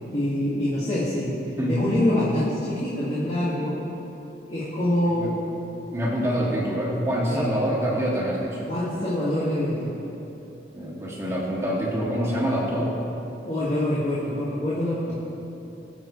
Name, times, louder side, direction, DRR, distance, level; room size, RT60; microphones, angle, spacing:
voice 1, 0.1-1.3 1.7-3.8 4.5-5.3 7.3-7.5 8.7-10.0 13.5-15.1, left 1 dB, 35° left, -10 dB, 2.2 m, -25 dB
voice 2, 5.9-8.7 10.7-13.0 15.1-15.2, equal, 15° right, -5 dB, 2.0 m, -26 dB
21.0 x 7.3 x 3.3 m, 2.9 s
head